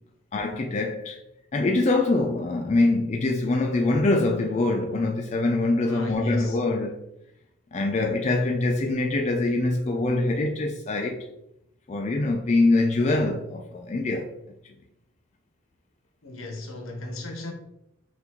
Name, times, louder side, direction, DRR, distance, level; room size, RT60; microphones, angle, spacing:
voice 1, 0.3-1.2 1.5-7.0 7.7-11.3 11.9-14.3, left 2 dB, 30° left, 0.3 m, -24 dB
voice 2, 5.9-6.6 16.2-17.5, left 2 dB, 80° left, 0.9 m, -33 dB
5.8 x 2.6 x 2.9 m
head